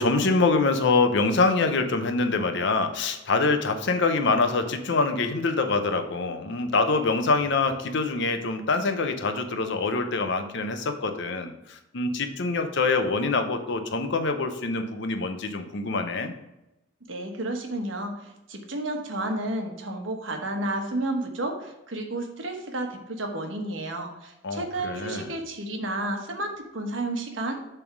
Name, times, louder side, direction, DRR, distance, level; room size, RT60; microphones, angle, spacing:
voice 1, 0.0-16.3 24.4-25.3, left 3 dB, 65° left, 7 dB, 0.8 m, -25 dB
voice 2, 17.1-27.7, right 1 dB, 75° right, 4 dB, 1.2 m, -31 dB
7.1 x 3.5 x 6.0 m, 0.93 s
head